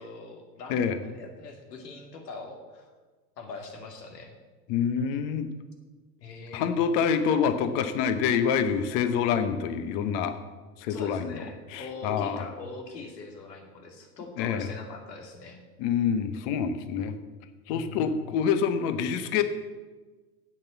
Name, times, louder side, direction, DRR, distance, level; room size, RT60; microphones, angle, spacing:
voice 1, 0.0-2.9 3.4-4.3 6.2-6.7 10.9-15.6 17.7-18.3, left 3 dB, 85° left, 3 dB, 2.6 m, -42 dB
voice 2, 4.7-5.5 6.5-10.4 10.8-11.4 11.7-12.4 14.4-14.7 15.8-17.2 17.7-19.4, left 7 dB, 30° left, 10 dB, 0.8 m, -26 dB
8.2 x 7.4 x 8.1 m, 1.3 s
supercardioid pair, 150°, 48 cm